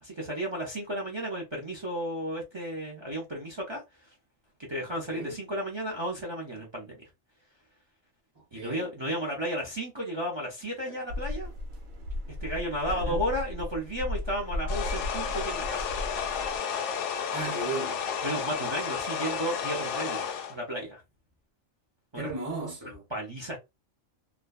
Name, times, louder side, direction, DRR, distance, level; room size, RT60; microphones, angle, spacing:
voice 1, 0.0-3.8 4.7-7.0 8.5-11.5 12.4-15.9 18.2-21.0 22.1-22.3 23.1-23.6, equal, 40° right, 0.4 m, -33 dB
voice 2, 5.1-5.4 8.3-8.9 10.9-11.0 12.9-13.2 17.3-18.0 22.1-23.0, right 3 dB, 15° right, 0.9 m, -36 dB
sound 1, 11.1-16.6, left 1 dB, 85° right, 1.0 m, -35 dB
sound 2, 14.7-20.5, left 7 dB, 70° left, 0.8 m, -32 dB
2.5 x 2.1 x 2.3 m
omnidirectional pair, 1.3 m